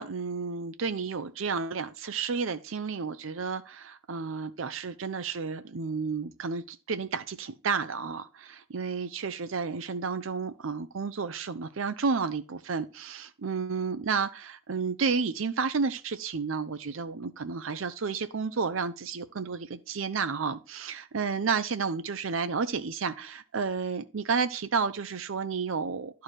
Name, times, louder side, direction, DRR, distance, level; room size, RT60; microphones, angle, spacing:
voice 1, 0.0-26.2, right 5 dB, 70° right, 0.6 m, -31 dB
11.5 x 4.7 x 4.6 m
head